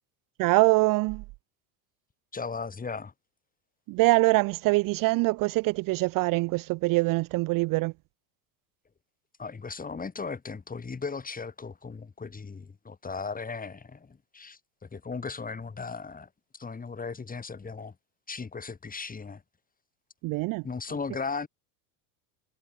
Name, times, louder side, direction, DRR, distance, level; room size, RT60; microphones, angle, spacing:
voice 1, 0.4-1.2 3.9-7.9 20.2-20.6, right 23 dB, 45° right, 0.5 m, -24 dB
voice 2, 2.3-3.1 9.4-17.9 18.3-19.4 20.6-21.5, left 4 dB, 15° left, 2.3 m, -37 dB
supercardioid pair, 95°, 49 cm